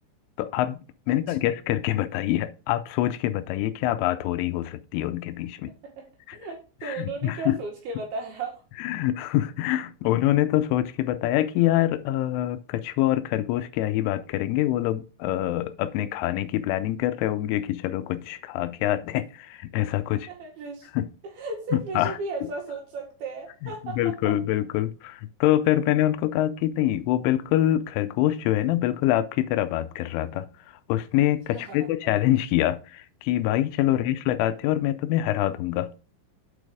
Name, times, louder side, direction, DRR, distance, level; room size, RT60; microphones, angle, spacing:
voice 1, 0.4-0.8 1.1-5.7 6.3-6.4 6.8-7.6 8.8-20.3 20.9-21.1 21.7-22.2 23.8-30.5 30.9-35.9, left 13 dB, 85° left, 3.1 m, -25 dB
voice 2, 1.1-1.5 5.8-8.6 20.3-20.9 21.2-24.3 31.5-31.9 33.9-34.2, right 3 dB, 65° right, 3.3 m, -36 dB
8.1 x 4.9 x 4.9 m
omnidirectional pair, 5.5 m